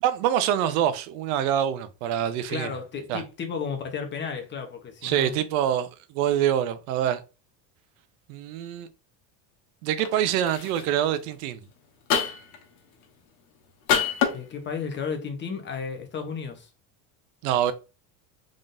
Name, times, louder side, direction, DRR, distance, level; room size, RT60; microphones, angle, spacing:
voice 1, 0.0-2.7 3.1-3.2 5.0-7.2 8.3-8.9 9.8-11.6 17.4-17.7, right 10 dB, 80° right, 0.7 m, -25 dB
voice 2, 2.5-5.3 14.3-16.7, left 6 dB, 25° left, 0.9 m, -33 dB
sound 1, 10.0-10.2 10.5-10.8 12.1-12.6 13.9-14.4, left 7 dB, 90° left, 1.2 m, -24 dB
3.7 x 3.7 x 2.6 m
cardioid pair, 135°, 42 cm